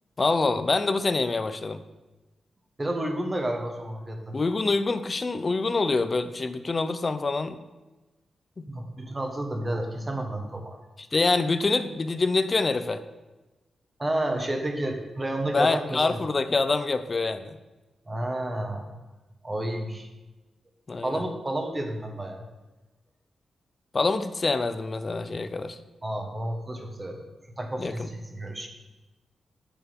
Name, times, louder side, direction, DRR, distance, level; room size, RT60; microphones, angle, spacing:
voice 1, 0.2-1.8 4.3-7.6 8.6-8.7 11.1-13.0 15.5-17.6 20.9-21.2 23.9-25.8 27.8-28.1, left 3 dB, 30° left, 11 dB, 0.5 m, -26 dB
voice 2, 2.8-4.4 8.7-10.8 14.0-16.2 18.1-19.0 19.4-20.1 21.0-22.4 26.0-27.2 27.6-28.7, right 1 dB, 20° right, 4 dB, 1.3 m, -31 dB
9.0 x 6.8 x 5.2 m, 1.1 s
wide cardioid pair, 125°, 0 cm